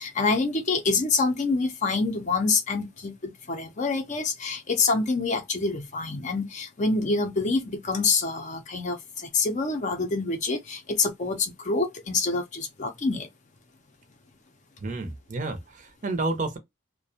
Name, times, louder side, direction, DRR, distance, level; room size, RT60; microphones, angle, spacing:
voice 1, 0.0-13.3, left 3 dB, 35° left, 0.5 m, -26 dB
voice 2, 14.8-16.6, right 2 dB, 40° right, 0.6 m, -30 dB
2.4 x 2.1 x 2.7 m
head